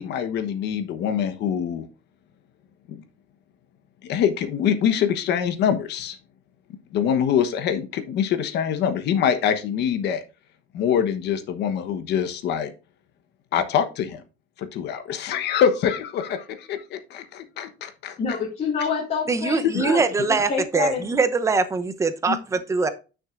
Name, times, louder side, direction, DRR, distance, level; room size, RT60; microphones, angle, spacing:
voice 1, 0.0-1.9 2.9-3.0 4.0-6.2 6.9-10.2 10.7-12.7 13.5-14.2 14.6-18.2 19.6-20.0, left 8 dB, 55° left, 1.1 m, -24 dB
voice 2, 18.2-20.1 20.5-21.1 22.2-22.4, left 5 dB, 35° left, 2.2 m, -27 dB
voice 3, 19.3-22.9, right 4 dB, 15° right, 0.7 m, -23 dB
9.8 x 6.2 x 2.5 m
cardioid pair, 165°, 20 cm